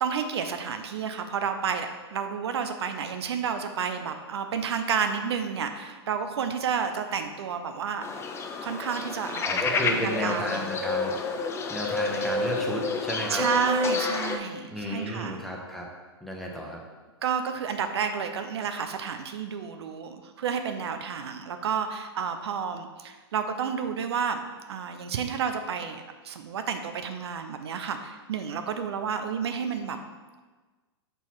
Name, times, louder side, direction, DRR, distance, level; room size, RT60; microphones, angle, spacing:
voice 1, 0.0-8.0 8.6-10.6 13.3-15.4 17.2-24.4 24.7-30.0, right 6 dB, 70° right, 7 dB, 0.6 m, -30 dB
sound 1, 8.0-14.4, left 4 dB, 20° left, 0.5 m, -29 dB
voice 2, 9.4-11.1 11.7-13.5 14.7-15.9 16.2-16.8, equal, ahead, -1 dB, 1.0 m, -32 dB
5.5 x 4.2 x 4.6 m, 1.3 s
hypercardioid pair, 110°, 14 cm